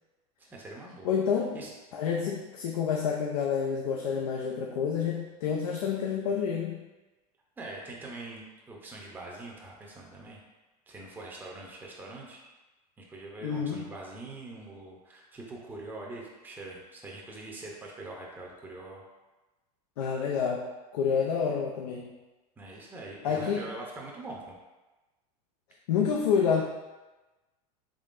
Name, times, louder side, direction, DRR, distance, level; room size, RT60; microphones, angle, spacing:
voice 1, 0.4-1.1 1.5-1.7 7.6-10.4 10.9-12.4 13.0-19.0 22.6-24.6, right 2 dB, 10° right, -2 dB, 0.6 m, -43 dB
voice 2, 1.0-1.6 1.9-6.8 13.4-13.9 20.0-20.7 20.9-22.1 23.2-23.7 25.9-26.6, left 6 dB, 85° left, 0 dB, 0.5 m, -28 dB
3.8 x 3.1 x 2.5 m, 1.1 s
supercardioid pair, 120°, 19 cm